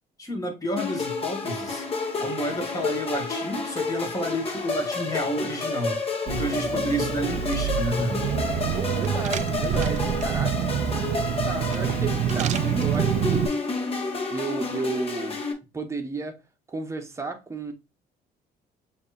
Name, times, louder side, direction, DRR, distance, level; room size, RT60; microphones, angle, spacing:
voice 1, 0.2-1.9 2.2-6.0 6.2-8.4, equal, 20° left, 1.6 m, -30 dB
sound 1, 0.8-15.5, left 3 dB, 35° left, 1.3 m, -30 dB
Car / Engine, 6.3-13.5, right 9 dB, 45° right, 0.4 m, -27 dB
voice 2, 8.7-10.7 11.4-13.5 14.3-15.4 15.7-16.4 16.7-17.7, right 3 dB, 15° right, 1.0 m, -33 dB
6.4 x 2.8 x 2.5 m
cardioid pair, 110°, 17 cm